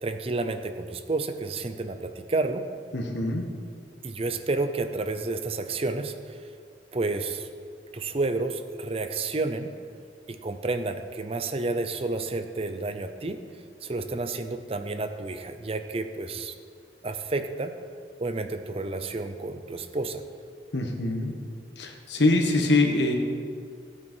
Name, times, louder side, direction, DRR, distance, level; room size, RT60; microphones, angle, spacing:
voice 1, 0.0-2.7 4.0-6.4 6.9-7.5 7.9-9.7 10.3-13.4 13.8-16.5 17.0-17.8 18.2-20.2, right 3 dB, 35° right, 8 dB, 0.6 m, -30 dB
voice 2, 2.9-3.4 20.7-21.3 21.8-23.1, left 2 dB, 80° left, 3 dB, 1.4 m, -24 dB
15.5 x 8.8 x 4.5 m, 2.2 s
head